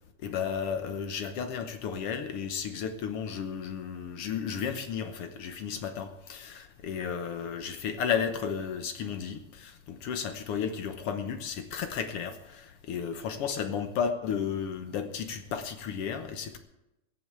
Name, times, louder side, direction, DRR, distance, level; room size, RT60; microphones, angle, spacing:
voice 1, 0.2-16.6, left 7 dB, 65° left, 8 dB, 1.6 m, -33 dB
15.5 x 7.9 x 8.7 m, 0.92 s
omnidirectional pair, 3.4 m